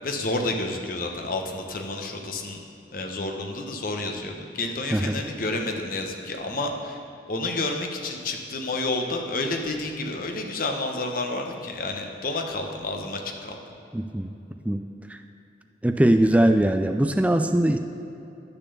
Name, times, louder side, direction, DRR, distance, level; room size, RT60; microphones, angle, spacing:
voice 1, 0.0-2.6 2.9-7.0 7.3-13.6, left 2 dB, 50° left, 3 dB, 1.1 m, -30 dB
voice 2, 4.9-5.2 13.9-14.3 14.6-15.2 15.8-17.8, right 1 dB, 10° right, 6 dB, 0.3 m, -21 dB
10.0 x 6.9 x 6.9 m, 2.9 s
head